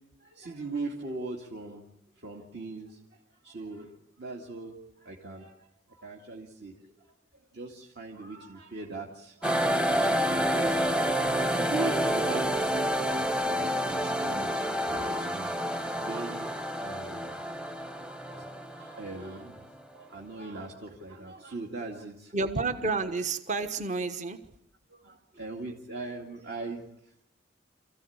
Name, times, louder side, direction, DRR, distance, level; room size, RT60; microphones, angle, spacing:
voice 1, 0.3-1.8 2.2-3.0 3.4-3.9 4.2-4.7 5.0-5.5 6.0-6.7 7.5-11.2 11.5-15.5 16.0-17.3 18.3-19.6 19.9-22.3 25.0-26.9, right 3 dB, 60° right, -1 dB, 2.4 m, -40 dB
sound 1, 9.4-19.7, equal, 5° right, 0.8 m, -29 dB
voice 2, 22.3-24.4, right 3 dB, 40° right, 8 dB, 1.3 m, -30 dB
27.0 x 15.5 x 8.7 m, 0.78 s
head